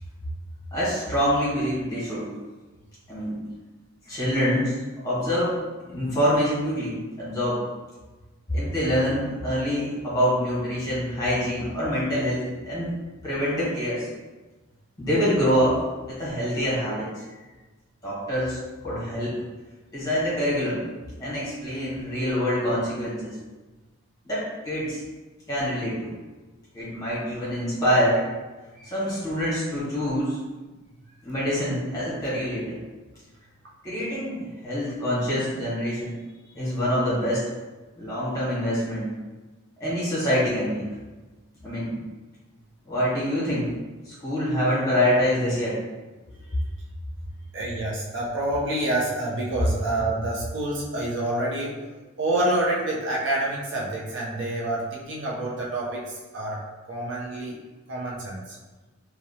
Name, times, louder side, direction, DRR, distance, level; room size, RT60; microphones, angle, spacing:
voice 1, 0.7-2.3 3.1-3.4 4.0-4.7 5.0-5.6 5.9-7.6 8.5-12.9 13.2-14.1 15.0-17.2 18.0-18.6 18.8-19.3 19.9-20.8 21.2-23.3 24.2-25.0 25.5-26.1 26.7-28.2 28.8-30.4 31.2-32.8 33.8-36.2 36.5-37.4 38.0-39.1 39.8-40.8 41.6-42.0 42.9-43.7 44.0-45.8, equal, 20° left, -10 dB, 1.5 m, -25 dB
voice 2, 47.5-51.7 52.2-56.6 56.9-57.5 57.9-58.6, right 1 dB, 60° right, -5 dB, 0.7 m, -27 dB
3.0 x 2.8 x 2.8 m, 1.2 s
head